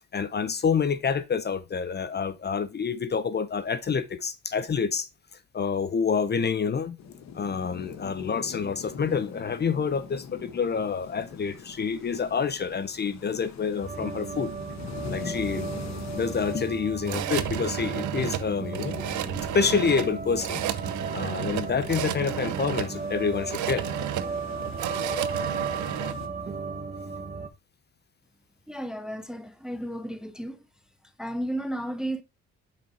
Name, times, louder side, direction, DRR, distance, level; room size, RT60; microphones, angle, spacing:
voice 1, 0.1-5.1 5.5-7.0 7.3-14.5 15.1-15.7 16.1-19.1 19.5-20.6 21.1-23.8, left 6 dB, 35° left, 0.7 m, -28 dB
sound 1, 7.0-26.3, left 6 dB, 65° left, 1.1 m, -43 dB
sound 2, 13.8-27.5, right 4 dB, 25° right, 1.1 m, -35 dB
sound 3, 14.8-26.1, right 13 dB, 75° right, 0.7 m, -33 dB
voice 2, 28.7-30.6 31.2-32.2, right 1 dB, ahead, 0.7 m, -33 dB
5.8 x 4.7 x 4.2 m
cardioid pair, 90°, 30 cm